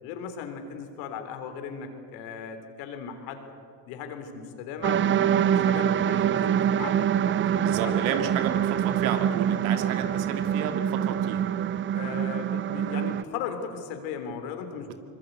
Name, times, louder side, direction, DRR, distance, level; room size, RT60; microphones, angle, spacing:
voice 1, 0.0-3.5 3.9-8.3 11.9-14.9, left 6 dB, 70° left, 7 dB, 3.8 m, -37 dB
sound 1, 4.8-13.2, right 9 dB, 25° right, 0.5 m, -25 dB
voice 2, 7.6-11.5 14.9-15.0, right 7 dB, 75° right, 7 dB, 2.5 m, -32 dB
24.5 x 22.0 x 8.3 m, 2.5 s
hypercardioid pair, 80°, 47 cm